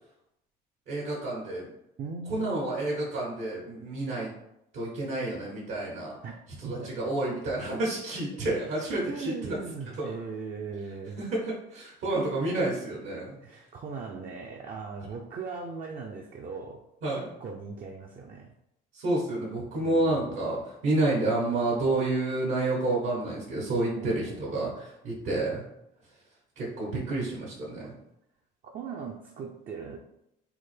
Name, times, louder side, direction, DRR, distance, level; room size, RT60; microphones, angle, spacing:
voice 1, 0.9-1.7 2.3-4.3 4.7-6.2 6.6-9.6 10.0-10.1 11.2-13.3 17.0-17.3 18.9-24.7 25.0-25.6 26.6-27.9, right 2 dB, 75° right, -5 dB, 1.2 m, -29 dB
voice 2, 2.0-2.6 6.2-6.3 6.6-7.0 9.0-11.2 13.4-16.8 17.1-18.5 19.8-20.4 24.0-24.8 28.6-30.0, right 4 dB, 40° right, 1 dB, 0.4 m, -39 dB
3.5 x 2.1 x 3.2 m, 0.81 s
supercardioid pair, 80°, 21 cm